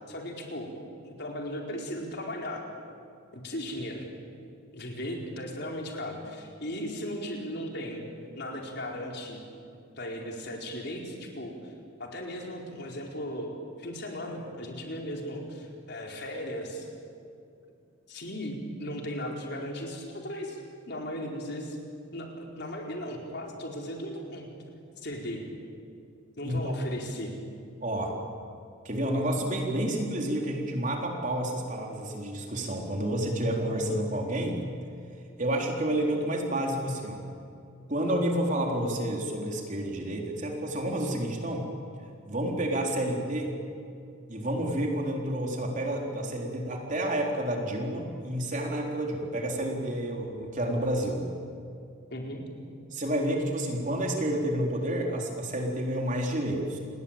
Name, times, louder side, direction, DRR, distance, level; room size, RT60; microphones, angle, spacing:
voice 1, 0.1-0.7 1.0-2.7 3.3-4.1 4.7-8.1 8.4-9.4 9.9-11.7 12.0-16.9 18.1-20.6 20.9-21.8 22.1-24.5 25.0-25.4 26.4-27.3 52.1-52.4, equal, 55° left, 1 dB, 4.5 m, -37 dB
voice 2, 27.8-28.1 28.8-34.6 35.4-37.2 37.9-41.7 42.2-43.6 44.3-51.3 52.9-56.8, right 1 dB, 40° right, 1 dB, 3.9 m, -30 dB
28.5 x 21.0 x 8.9 m, 2.5 s
head